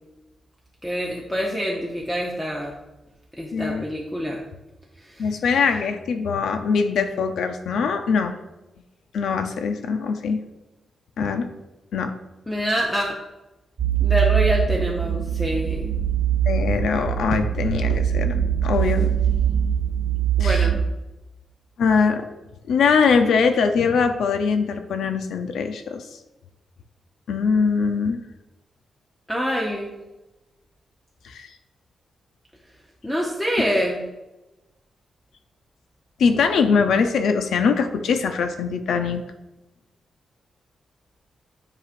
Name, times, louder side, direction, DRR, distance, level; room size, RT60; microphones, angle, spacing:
voice 1, 0.8-2.7 3.4-4.4 5.0-5.3 12.5-13.2 14.0-15.9 20.4-20.8 29.3-30.0 33.0-34.1, equal, 5° left, -2 dB, 0.6 m, -26 dB
voice 2, 3.5-3.8 5.2-8.3 9.1-10.4 11.2-11.5 11.9-12.2 16.5-19.1 20.4-20.7 21.8-22.3 22.7-26.1 27.3-28.2 31.2-31.5 36.2-39.2, left 5 dB, 80° left, 7 dB, 0.5 m, -22 dB
sound 1, 13.8-20.9, right 9 dB, 55° right, 0.8 m, -22 dB
9.6 x 4.9 x 2.5 m, 1.0 s
wide cardioid pair, 165°, 0 cm